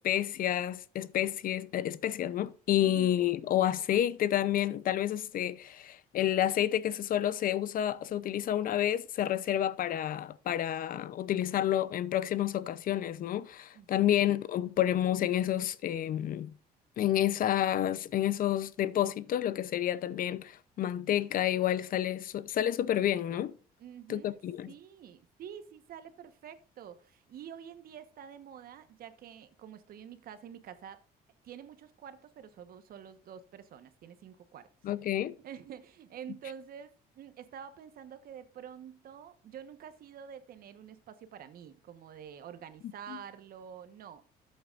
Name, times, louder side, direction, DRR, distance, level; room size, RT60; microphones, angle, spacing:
voice 1, 0.0-16.5 17.0-23.6 24.1-24.7 34.8-35.4 43.1-43.2, left 11 dB, 55° left, 0.6 m, -29 dB
voice 2, 2.8-3.2 13.7-14.1 23.8-24.4 24.7-31.0 31.4-34.7 35.4-44.2, right 8 dB, 60° right, 1.2 m, -48 dB
13.5 x 7.9 x 2.5 m
cardioid pair, 110°, 17 cm